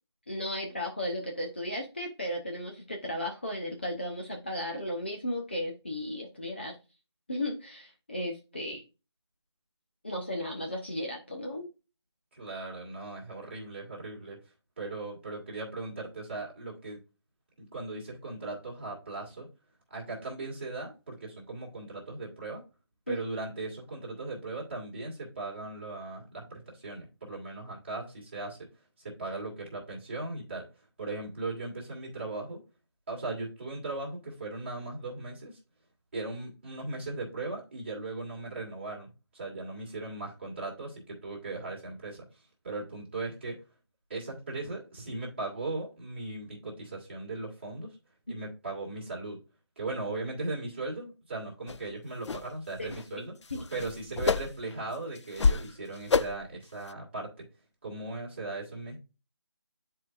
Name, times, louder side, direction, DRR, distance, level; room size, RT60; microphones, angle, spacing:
voice 1, 0.3-6.8 7.3-8.8 10.0-11.7 23.1-23.2 48.3-48.4 52.8-53.2 53.5-53.6, left 1 dB, 25° left, 0 dB, 0.7 m, -35 dB
voice 2, 12.3-14.4 14.8-17.0 17.6-19.5 19.9-22.6 23.1-28.6 29.0-30.7 31.0-32.6 33.1-35.6 36.1-42.2 42.6-43.6 44.1-48.0 48.3-49.4 49.8-53.3 53.7-57.3 57.8-59.0, right 2 dB, 25° right, -3 dB, 2.2 m, -38 dB
sound 1, 51.7-51.8 52.3-52.4 52.8-53.0 53.4-54.7 55.2-55.7 56.1-56.5 56.9-57.0, left 5 dB, 85° left, 0.4 m, -28 dB
9.8 x 4.6 x 2.5 m, 0.29 s
figure-of-eight pair, 175°, 14 cm